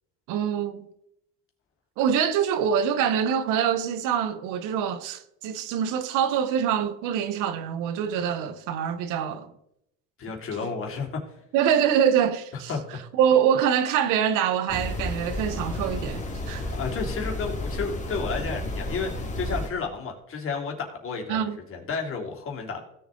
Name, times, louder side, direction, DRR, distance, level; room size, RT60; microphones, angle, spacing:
voice 1, 0.3-0.9 2.0-9.5 10.6-10.7 11.5-12.7 13.1-16.8 21.3-21.6, right 8 dB, 80° right, 1.1 m, -25 dB
voice 2, 10.2-11.4 12.7-12.8 16.7-22.8, left 5 dB, 45° left, 3.0 m, -32 dB
sound 1, 14.7-19.7, left 1 dB, 25° left, 2.1 m, -32 dB
16.0 x 7.1 x 3.8 m
supercardioid pair, 100°, 31 cm